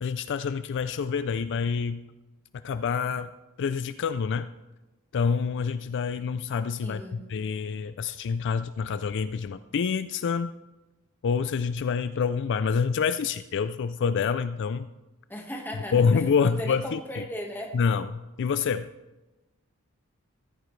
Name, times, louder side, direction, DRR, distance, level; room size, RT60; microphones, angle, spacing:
voice 1, 0.0-2.0 2.6-3.3 3.6-4.5 5.1-10.5 11.2-14.9 15.9-17.2 17.7-18.9, left 6 dB, 55° left, 13 dB, 0.4 m, -27 dB
voice 2, 6.8-7.2 15.3-17.8, equal, 10° left, 1 dB, 1.5 m, -37 dB
14.5 x 14.5 x 3.2 m, 1.1 s
head